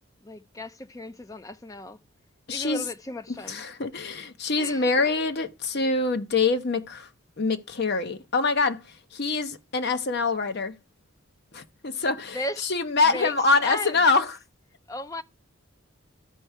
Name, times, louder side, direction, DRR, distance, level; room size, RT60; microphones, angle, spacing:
voice 1, 0.2-2.0 2.5-3.6 4.6-5.1 12.3-12.7 13.1-13.3 13.6-14.0 14.9-15.2, left 1 dB, 15° left, 0.4 m, -35 dB
voice 2, 2.5-2.8 3.3-7.1 7.4-10.7 11.5-14.4, left 3 dB, 50° left, 0.7 m, -25 dB
12.5 x 4.5 x 4.5 m
head